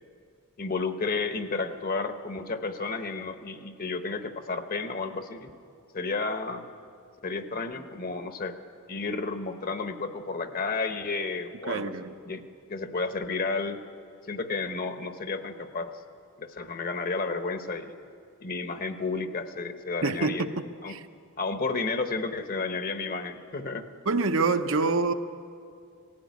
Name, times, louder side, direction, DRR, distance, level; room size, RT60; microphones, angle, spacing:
voice 1, 0.6-5.5 5.9-6.6 7.2-8.6 8.9-12.4 12.7-13.8 14.3-16.0 16.4-18.0 18.4-20.5 20.8-20.9 21.4-23.8, left 4 dB, 40° left, 1.0 m, -32 dB
voice 2, 11.7-12.1 20.0-20.6 20.9-21.0 24.1-25.1, right 3 dB, 60° right, 0.8 m, -26 dB
18.5 x 15.0 x 9.4 m
head